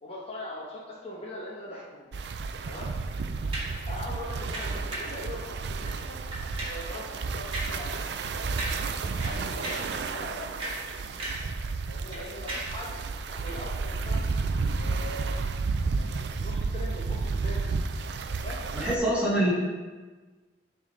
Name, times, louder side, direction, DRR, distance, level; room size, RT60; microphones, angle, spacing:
voice 1, 0.0-2.1 2.6-2.9 3.9-6.2 6.6-8.0 8.4-8.5 9.2-10.8 11.9-14.3 14.8-15.4 15.9-17.7 18.4-19.5, left 1 dB, 35° left, -5 dB, 1.0 m, -41 dB
sound 1, 2.1-19.0, right 4 dB, 70° right, 0.4 m, -32 dB
sound 2, 3.5-3.8 4.5-5.2 5.8-6.0 6.3-6.9 7.5-7.8 8.1-8.3 8.6-8.9 9.2-10.0 10.4-11.6 11.8-12.8 13.4-13.6, right 1 dB, 30° right, 1.6 m, -37 dB
voice 2, 18.7-19.5, right 1 dB, 5° right, -8 dB, 1.8 m, -25 dB
9.6 x 3.7 x 3.8 m, 1.3 s
head